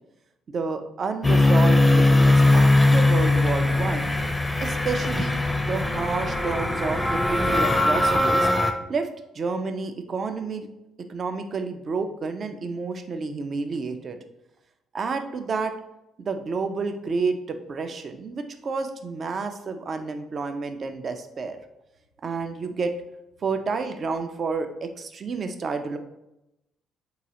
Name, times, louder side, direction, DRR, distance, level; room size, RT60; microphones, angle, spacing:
voice 1, 0.5-4.1 4.6-5.3 5.7-7.0 7.3-8.5 8.9-9.1 9.3-10.7 11.1-14.2 14.9-15.7 16.2-21.6 22.2-22.9 23.4-26.0, right 4 dB, 45° right, 7 dB, 0.4 m, -30 dB
sound 1, 1.2-8.7, left 2 dB, 15° left, 0.5 m, -20 dB
3.8 x 2.3 x 2.8 m, 0.89 s
hypercardioid pair, 45°, 0 cm